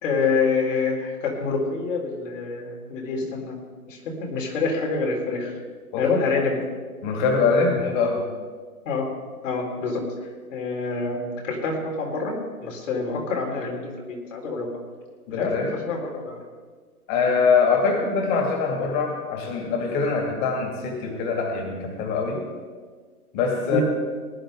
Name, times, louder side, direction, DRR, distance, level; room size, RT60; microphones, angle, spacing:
voice 1, 0.0-3.5 3.9-5.5 6.0-6.6 8.9-9.1 9.4-10.0 10.5-12.3 12.6-14.7 15.3-15.5 15.8-16.4 23.7-23.8, left 4 dB, 55° left, -1 dB, 3.8 m, -26 dB
voice 2, 7.0-8.3 15.3-15.7 17.1-22.4 23.3-23.8, left 4 dB, 30° left, 2 dB, 2.5 m, -23 dB
19.0 x 10.5 x 3.8 m, 1.5 s
hypercardioid pair, 135°, 46 cm